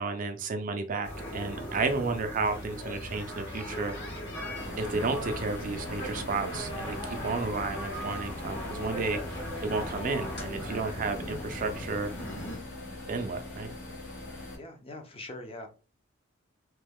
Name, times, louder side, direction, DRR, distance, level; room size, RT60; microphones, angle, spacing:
voice 1, 0.0-4.2 4.8-12.1 13.1-13.7, right 3 dB, 40° right, 6 dB, 0.4 m, -32 dB
sound 1, 1.0-12.6, equal, 55° left, 1.4 m, -38 dB
sound 2, 4.6-14.6, left 2 dB, 75° left, 1.6 m, -42 dB
voice 2, 11.2-11.8 14.6-15.7, left 1 dB, 30° left, 4 dB, 0.6 m, -43 dB
3.1 x 2.2 x 3.5 m, 0.35 s
head